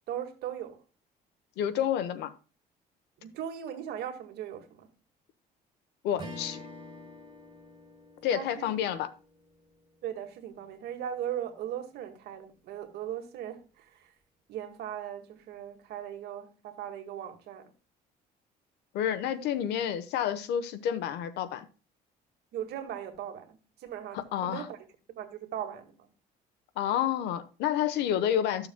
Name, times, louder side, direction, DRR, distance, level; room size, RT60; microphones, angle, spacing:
voice 1, 0.1-0.8 3.2-4.9 8.3-8.7 10.0-14.1 14.5-17.7 22.5-24.8 25.1-26.1, right 10 dB, 75° right, 1.8 m, -38 dB
voice 2, 1.6-2.3 6.0-6.6 8.2-9.1 18.9-21.7 24.1-24.7 26.8-28.7, left 10 dB, 85° left, 1.0 m, -29 dB
Strum, 6.2-10.8, left 1 dB, 25° right, 4.4 m, -48 dB
13.5 x 6.9 x 2.2 m
cardioid pair, 110°, 17 cm